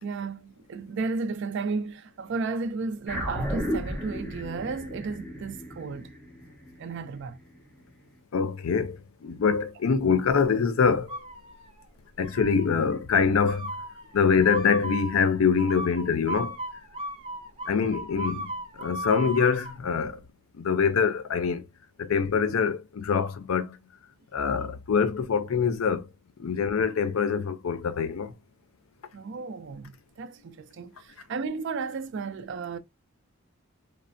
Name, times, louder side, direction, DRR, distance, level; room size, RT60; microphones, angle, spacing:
voice 1, 0.0-6.1 6.8-7.4 29.1-32.8, right 4 dB, 60° right, 0.4 m, -33 dB
sound 1, 3.1-7.7, equal, ahead, 0.9 m, -34 dB
voice 2, 8.3-9.0 9.2-11.1 12.2-13.7 14.1-16.5 17.7-18.5 18.8-20.2 20.6-21.6 22.0-23.7 24.3-26.0 26.4-28.3, left 6 dB, 90° left, 0.5 m, -24 dB
sound 2, 11.1-11.8 12.2-12.8 13.5-19.8, right 1 dB, 25° right, 0.6 m, -37 dB
3.2 x 2.1 x 2.5 m
head